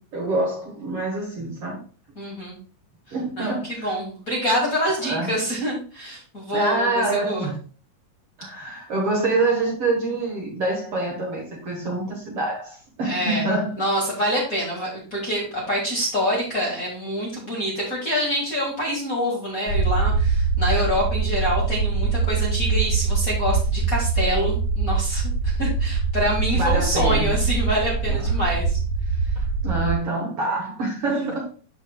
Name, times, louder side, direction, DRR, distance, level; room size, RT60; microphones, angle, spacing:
voice 1, 0.1-1.8 3.1-4.0 5.0-5.4 6.5-7.6 8.4-13.8 26.5-27.4 28.1-28.3 29.4-31.4, right 2 dB, 55° right, 2.0 m, -26 dB
voice 2, 2.2-2.6 3.1-7.5 13.0-13.4 13.8-28.8 31.1-31.2, equal, 30° left, 1.9 m, -26 dB
sound 1, 19.7-29.9, right 4 dB, 55° left, 0.9 m, -23 dB
12.5 x 4.5 x 2.3 m
omnidirectional pair, 3.8 m